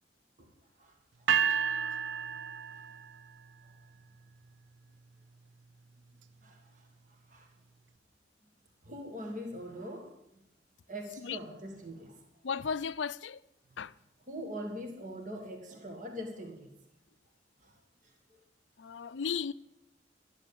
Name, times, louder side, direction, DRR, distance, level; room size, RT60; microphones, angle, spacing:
voice 1, 0.8-1.3 2.7-2.8 3.6-3.8 6.4-7.5 8.8-10.2 10.9-12.2 14.3-16.7 17.6-18.4, equal, 40° right, 1.9 m, -43 dB
sound 1, 1.3-3.4, right 7 dB, 85° right, 0.6 m, -31 dB
voice 2, 12.4-13.4 13.8-13.9 18.8-19.5, left 6 dB, 80° left, 0.5 m, -34 dB
12.5 x 10.5 x 7.0 m
head